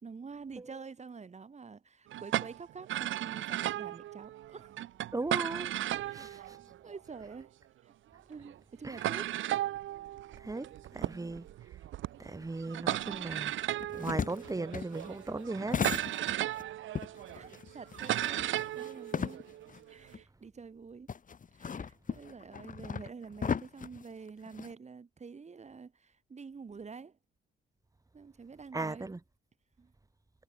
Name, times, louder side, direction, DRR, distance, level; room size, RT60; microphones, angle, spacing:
voice 1, 0.0-4.7 6.0-6.5 6.8-7.6 7.8-7.9 8.3-9.3 10.9-11.3 13.1-13.2 17.2-19.5 19.9-21.1 21.6-27.2 28.1-29.1 29.8-29.9, right 5 dB, 35° right, 4.1 m, -48 dB
sound 1, 2.1-7.4 8.2-8.3 8.4-8.6 9.0-20.1, right 13 dB, 80° right, 1.3 m, -36 dB
voice 2, 5.1-5.7 6.1-6.6 8.8-9.0 10.4-11.4 12.2-15.8 28.7-29.2, right 2 dB, 15° right, 2.7 m, -38 dB
sound 2, 13.8-16.6 16.9-19.8 20.1-20.2 21.1-24.7, left 6 dB, 40° left, 3.5 m, -37 dB
cardioid pair, 90°, 20 cm